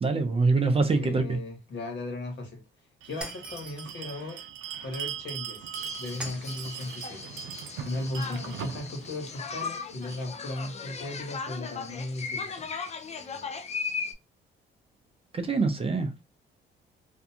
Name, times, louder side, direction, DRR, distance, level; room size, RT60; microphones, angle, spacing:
voice 1, 0.0-1.4 15.3-16.2, right 3 dB, 30° right, 0.5 m, -25 dB
voice 2, 0.9-2.6 3.0-4.4 4.8-5.7 6.0-7.3 7.8-12.7, left 2 dB, 65° left, 1.3 m, -36 dB
Bell, 3.0-10.3, right 8 dB, 80° right, 0.5 m, -40 dB
Shatter, 3.2-4.0 6.2-6.9, right 1 dB, 5° right, 0.9 m, -41 dB
sound 1, 5.7-14.1, left 5 dB, 35° left, 0.5 m, -37 dB
2.5 x 2.2 x 2.7 m
cardioid pair, 90°, 20 cm